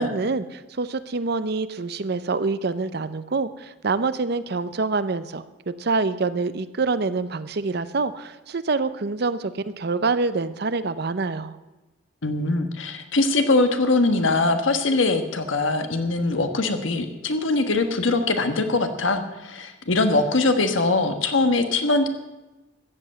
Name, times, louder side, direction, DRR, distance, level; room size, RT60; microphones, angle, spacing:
voice 1, 0.0-11.6, right 4 dB, 55° right, 14 dB, 0.6 m, -26 dB
voice 2, 12.2-22.1, left 2 dB, 85° left, 7 dB, 1.3 m, -22 dB
14.5 x 7.9 x 8.3 m, 1.1 s
head